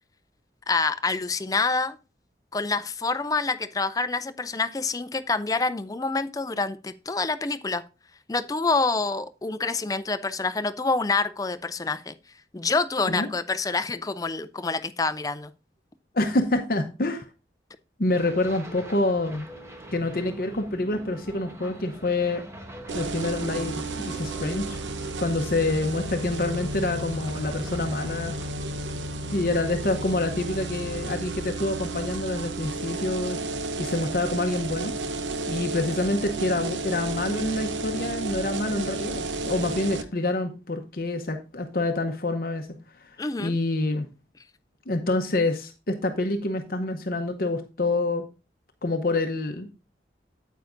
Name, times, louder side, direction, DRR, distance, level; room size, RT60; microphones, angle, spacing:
voice 1, 0.7-2.0 2.5-7.8 8.3-12.1 12.5-15.5 43.2-43.5, left 3 dB, 20° left, 0.4 m, -27 dB
voice 2, 16.1-17.3 18.0-19.5 19.9-22.4 22.9-24.8 25.2-28.4 29.3-33.4 33.8-34.9 35.5-42.7 43.0-43.1 43.4-44.1 44.9-48.2 48.8-49.7, left 2 dB, 50° left, 0.8 m, -27 dB
sound 1, 18.1-28.5, equal, 15° right, 1.1 m, -43 dB
sound 2, 22.9-40.0, right 3 dB, 90° right, 0.8 m, -32 dB
9.3 x 8.3 x 2.6 m
head